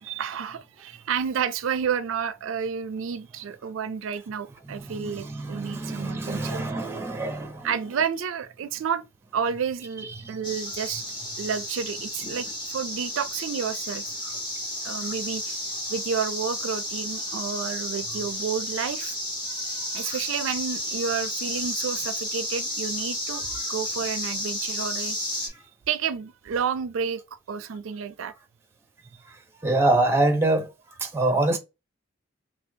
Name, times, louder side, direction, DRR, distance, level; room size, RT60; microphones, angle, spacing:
voice 1, 0.0-6.6 7.6-9.0 9.3-11.0 11.4-14.0 14.8-15.6 15.9-19.1 19.6-25.2 25.9-27.2 27.5-28.3, right 7 dB, 80° right, 0.4 m, -30 dB
voice 2, 4.7-7.7 29.6-30.7 31.0-31.6, right 2 dB, 10° right, 0.6 m, -25 dB
sound 1, 10.4-25.5, left 1 dB, 25° left, 1.0 m, -32 dB
3.5 x 2.7 x 2.7 m
head